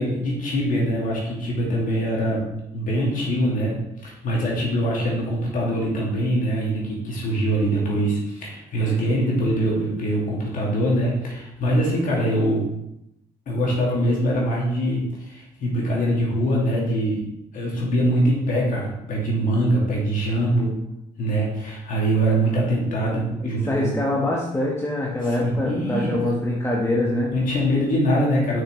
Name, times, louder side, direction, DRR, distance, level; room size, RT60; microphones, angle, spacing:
voice 1, 0.0-2.5 2.7-12.6 13.5-17.2 17.5-20.7 21.2-23.9 25.3-26.1 27.3-28.6, right 1 dB, 55° left, -3 dB, 2.4 m, -23 dB
voice 2, 23.4-27.3, left 1 dB, 15° left, -4 dB, 1.3 m, -24 dB
6.6 x 5.9 x 3.2 m, 0.84 s
hypercardioid pair, 60°, 16 cm